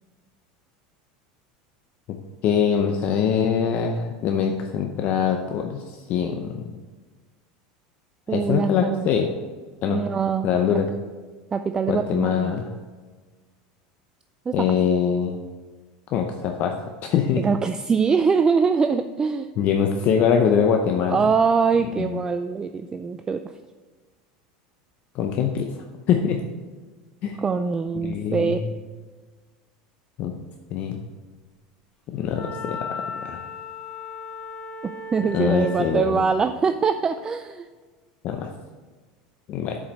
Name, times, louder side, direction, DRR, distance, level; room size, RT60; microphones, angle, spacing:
voice 1, 2.4-6.8 8.3-9.3 9.8-10.0 10.4-10.9 11.9-12.7 14.5-15.4 16.1-16.7 17.0-17.4 19.6-21.2 22.0-22.1 25.1-25.7 26.1-26.4 27.2-27.4 28.0-28.7 30.2-30.3 30.7-31.0 32.1-32.8 33.1-33.4 35.3-36.2 38.2-38.5 39.5-39.8, left 7 dB, 50° left, 4 dB, 0.6 m, -23 dB
voice 2, 8.3-9.2 9.9-10.8 11.5-12.5 14.5-14.8 17.4-19.5 21.1-23.4 27.4-28.6 34.8-37.7, right 5 dB, 20° right, 9 dB, 0.3 m, -23 dB
Wind instrument woodwind instrument, 32.3-36.1, left 3 dB, 15° left, 2.4 m, -35 dB
7.1 x 4.9 x 5.4 m, 1.4 s
supercardioid pair, 115°, 3 cm